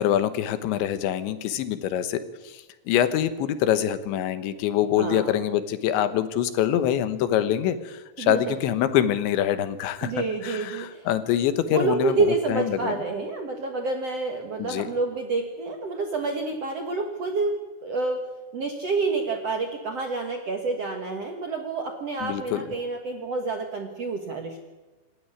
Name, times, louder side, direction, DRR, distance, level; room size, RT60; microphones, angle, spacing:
voice 1, 0.0-2.2 2.5-12.2 12.5-12.9 14.6-14.9 22.2-22.6, left 10 dB, 85° left, 11 dB, 3.5 m, -25 dB
voice 2, 5.0-5.4 8.2-8.5 10.0-11.1 11.7-18.2 18.5-24.6, right 3 dB, 60° right, 4 dB, 1.7 m, -28 dB
26.5 x 12.5 x 9.7 m, 1.1 s
omnidirectional pair, 5.1 m